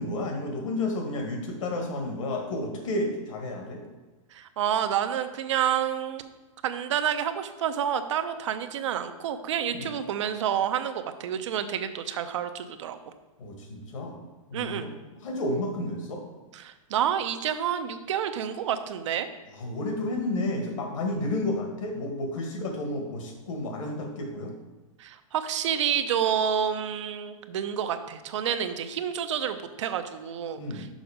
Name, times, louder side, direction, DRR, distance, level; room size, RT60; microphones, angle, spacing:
voice 1, 0.0-3.8 9.7-9.9 13.4-14.2 14.5-14.9 15.2-16.2 19.5-24.5 30.6-30.9, left 1 dB, 65° left, 2 dB, 1.9 m, -31 dB
voice 2, 4.3-6.3 6.6-13.0 14.5-14.9 16.5-19.3 25.0-30.9, right 9 dB, 60° right, 9 dB, 0.7 m, -29 dB
6.4 x 5.2 x 5.0 m, 1.2 s
supercardioid pair, 160°, 17 cm